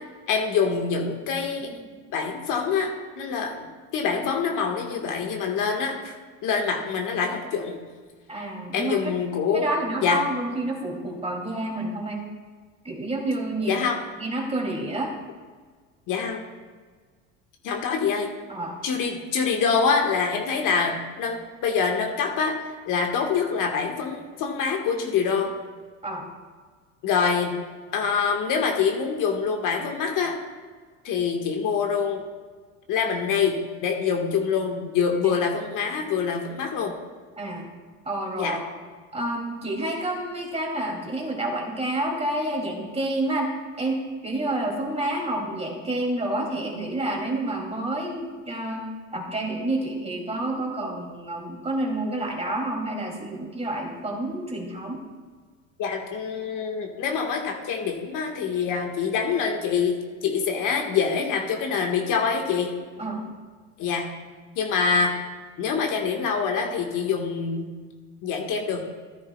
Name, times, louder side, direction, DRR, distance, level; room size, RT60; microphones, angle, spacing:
voice 1, 0.3-1.8 2.1-3.7 3.9-6.1 6.4-7.8 8.3-8.4 8.7-9.7 10.0-10.2 13.7-14.0 16.1-16.4 17.6-18.3 18.8-22.6 22.9-25.5 27.0-27.6 27.9-30.3 31.0-32.2 32.9-36.9 38.4-38.6 55.8-60.0 60.2-62.7 63.8-64.1 64.6-65.2 65.6-67.7 68.2-68.9, left 6 dB, 55° left, 2 dB, 1.5 m, -25 dB
voice 2, 8.3-9.1 9.5-12.2 12.8-13.9 14.2-15.1 18.5-18.8 26.0-26.3 35.2-35.4 37.4-37.7 38.0-38.6 39.1-55.0 63.0-63.3, right 1 dB, 15° right, 0 dB, 2.7 m, -29 dB
14.5 x 9.8 x 2.3 m, 1.5 s
supercardioid pair, 90°, 39 cm